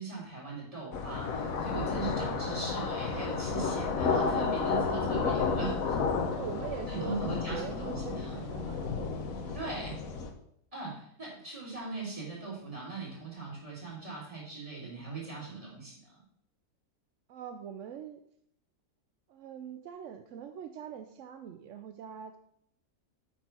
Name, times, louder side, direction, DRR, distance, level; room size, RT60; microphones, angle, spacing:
voice 1, 0.0-6.0 6.9-8.4 9.5-10.0 10.7-16.2, right 3 dB, 20° right, -7 dB, 3.9 m, -39 dB
sound 1, 0.9-10.3, left 5 dB, 60° left, 1.3 m, -32 dB
voice 2, 2.2-2.6 6.3-9.6 11.3-11.5 15.4-15.6 17.3-18.2 19.3-22.4, right 8 dB, 65° right, 7 dB, 0.7 m, -43 dB
8.2 x 4.7 x 6.0 m, 0.69 s
omnidirectional pair, 1.8 m